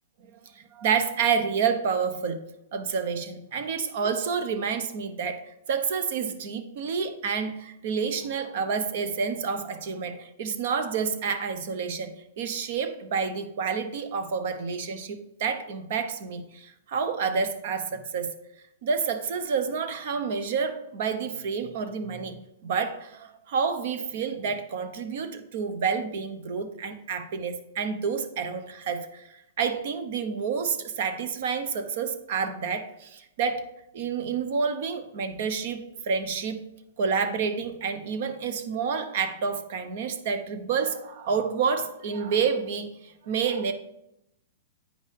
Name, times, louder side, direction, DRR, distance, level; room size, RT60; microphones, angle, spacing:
voice 1, 0.2-2.4 2.7-18.3 18.8-36.6 37.0-43.7, right 6 dB, 60° right, 9 dB, 1.0 m, -29 dB
8.7 x 5.3 x 3.4 m, 0.84 s
hypercardioid pair, 130°, 0 cm